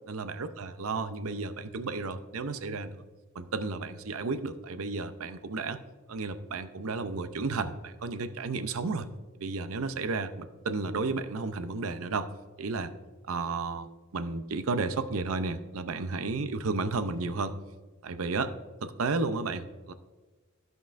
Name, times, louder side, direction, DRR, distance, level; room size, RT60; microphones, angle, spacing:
voice 1, 0.1-2.9 3.3-5.8 6.1-9.1 9.4-12.3 12.6-12.9 13.3-13.9 14.1-17.5 18.0-18.5 18.8-19.9, right 3 dB, 75° right, 11 dB, 0.6 m, -32 dB
15.0 x 5.3 x 2.5 m, 1.3 s
head